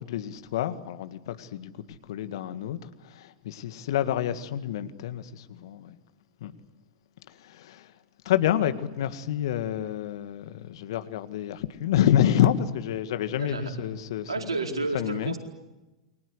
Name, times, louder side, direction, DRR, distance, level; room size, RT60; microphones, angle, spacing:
voice 1, 0.0-6.0 6.4-6.5 7.3-7.9 8.3-14.5 14.9-15.4, left 11 dB, 65° left, 2.0 m, -28 dB
voice 2, 13.4-13.7 14.3-15.4, right 3 dB, 85° right, 4.5 m, -31 dB
29.5 x 23.5 x 8.2 m
figure-of-eight pair, 90°, 3 cm